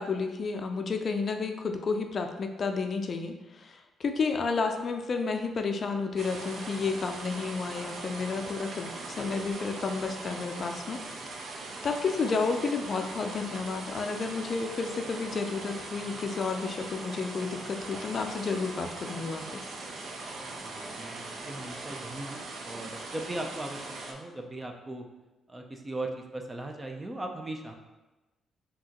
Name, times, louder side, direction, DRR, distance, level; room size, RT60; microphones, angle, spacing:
voice 1, 0.0-11.0 11.4-11.6 11.8-19.6, left 4 dB, 45° left, 5 dB, 0.4 m, -31 dB
sound 1, 6.2-24.1, right 3 dB, 60° right, 0.6 m, -40 dB
voice 2, 20.4-25.0 25.5-27.7, right 2 dB, 20° right, 3 dB, 0.5 m, -39 dB
5.3 x 2.9 x 2.9 m, 1.1 s
cardioid pair, 90°, 0 cm